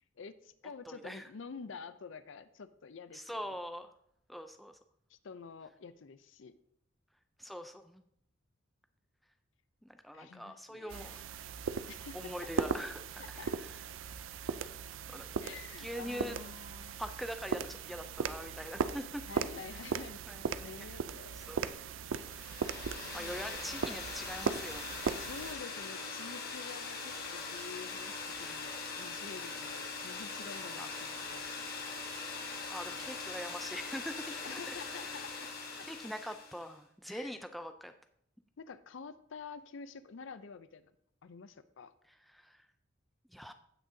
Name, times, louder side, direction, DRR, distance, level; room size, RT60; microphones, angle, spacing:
voice 1, 0.2-3.5 5.1-6.5 10.1-11.2 11.9-12.3 13.2-13.5 15.4-17.0 19.3-20.2 20.6-21.6 23.0-23.3 25.2-31.5 34.4-35.5 35.8-35.9 37.1-37.3 38.6-40.9 41.2-41.9, left 5 dB, 65° left, 13 dB, 0.5 m, -48 dB
voice 2, 0.9-1.3 3.1-3.9 4.3-4.8 7.4-8.0 9.8-11.4 12.1-13.0 13.3-13.8 14.4-14.6 15.1-15.5 15.8-16.4 17.0-19.2 20.3-20.5 20.8-21.0 21.3-21.6 23.1-25.2 30.8-30.9 32.7-35.1 35.8-37.9 42.1-42.6 43.3-43.5, equal, ahead, 7 dB, 0.3 m, -43 dB
sound 1, 10.9-25.6, right 6 dB, 75° right, 0.4 m, -38 dB
sound 2, 22.2-36.7, left 4 dB, 50° left, 1.5 m, -42 dB
15.5 x 6.2 x 2.7 m, 0.72 s
head